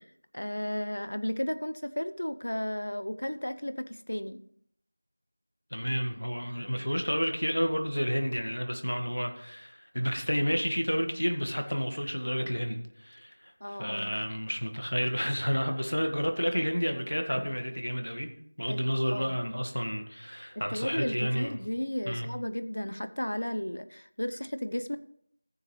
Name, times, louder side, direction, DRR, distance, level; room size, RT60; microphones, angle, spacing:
voice 1, 0.3-4.4 13.6-14.2 18.7-18.8 19.1-19.4 20.7-25.0, left 1 dB, 70° left, 12 dB, 0.7 m, -34 dB
voice 2, 5.7-18.3 18.6-21.6 22.1-22.3, equal, 90° left, 5 dB, 1.7 m, -30 dB
14.5 x 7.2 x 3.2 m, 0.67 s
figure-of-eight pair, 175°, 0 cm